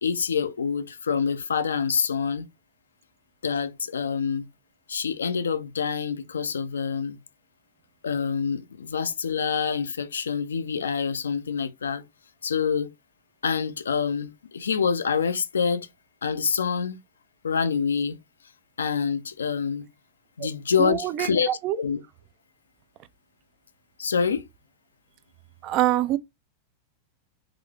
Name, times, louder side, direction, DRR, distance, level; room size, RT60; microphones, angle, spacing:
voice 1, 0.0-2.5 3.4-4.5 4.9-7.2 8.0-12.0 12.4-12.9 13.4-15.9 16.2-17.0 17.4-18.2 18.8-19.9 20.4-21.5 21.8-22.0 24.0-24.4, left 6 dB, 70° left, 0.5 m, -26 dB
voice 2, 20.8-21.8 25.6-26.2, right 14 dB, 40° right, 0.4 m, -25 dB
3.9 x 2.7 x 3.2 m
figure-of-eight pair, 90°, 0 cm